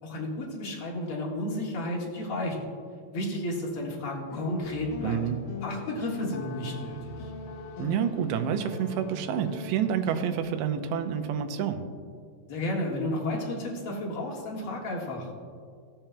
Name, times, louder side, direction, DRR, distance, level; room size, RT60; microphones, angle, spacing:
voice 1, 0.0-2.6 3.1-5.2 5.6-7.3 12.5-15.3, left 1 dB, 60° left, -4 dB, 1.4 m, -32 dB
sound 1, 4.3-10.4, left 3 dB, 85° left, 1.9 m, -40 dB
voice 2, 5.0-5.4 7.8-11.8, right 8 dB, 85° right, 7 dB, 2.9 m, -28 dB
18.0 x 7.3 x 2.2 m, 2.2 s
omnidirectional pair, 5.0 m